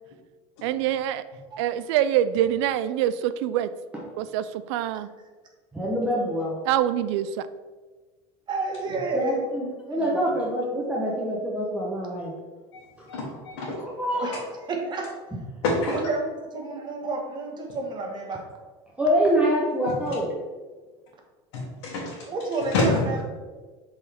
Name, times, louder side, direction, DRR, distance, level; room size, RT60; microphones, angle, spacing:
voice 1, 0.6-1.2 1.6-3.7 4.2-5.1 6.7-7.5, right 11 dB, 80° right, 13 dB, 0.4 m, -25 dB
voice 2, 5.7-6.6 9.1-12.3 13.0-13.1 13.6-14.4 19.0-20.3, equal, 10° right, -4 dB, 1.0 m, -25 dB
voice 3, 8.5-9.4 9.9-10.2 14.1-14.4 14.7-15.1 15.9-18.4 22.3-23.2, right 3 dB, 30° right, 1 dB, 1.3 m, -30 dB
voice 4, 13.1-13.8 15.6-16.0 21.5-22.2 22.7-23.0, left 2 dB, 90° left, -5 dB, 1.4 m, -26 dB
7.4 x 3.9 x 3.5 m, 1.4 s
supercardioid pair, 125°, 14 cm